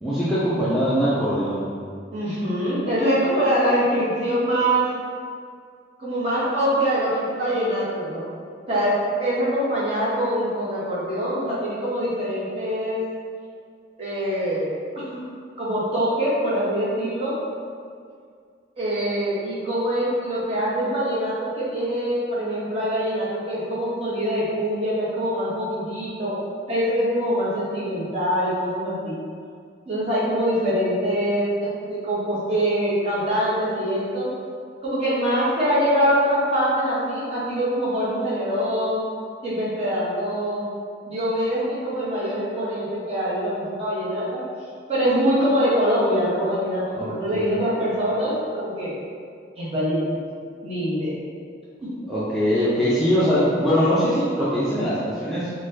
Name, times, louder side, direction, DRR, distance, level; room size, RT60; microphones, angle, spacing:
voice 1, 0.0-1.6 46.9-47.6 52.1-55.5, equal, ahead, -13 dB, 0.4 m, -22 dB
voice 2, 2.1-4.8 6.0-8.3 8.7-13.0 14.0-14.7 14.9-15.2 15.6-17.3 18.8-26.3 26.7-29.2 29.9-34.3 34.8-39.0 39.4-40.7 41.1-44.4 44.9-48.9 49.6-50.1 50.6-51.2, equal, 30° right, -9 dB, 0.9 m, -24 dB
4.0 x 2.2 x 2.7 m, 2.2 s
head